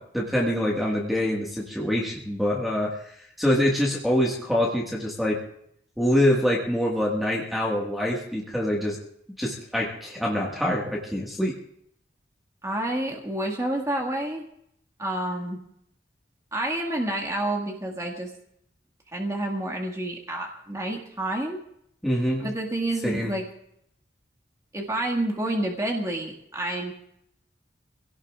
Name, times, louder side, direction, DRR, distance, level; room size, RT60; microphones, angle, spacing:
voice 1, 0.0-5.4 6.0-9.0 9.4-11.5 22.0-22.5 23.0-23.3, equal, ahead, -3 dB, 1.8 m, -25 dB
voice 2, 12.6-14.4 15.0-15.6 16.5-18.3 19.1-21.6 22.4-23.4 24.7-26.9, right 1 dB, 15° right, 0 dB, 1.8 m, -29 dB
25.0 x 17.5 x 2.5 m, 0.72 s
head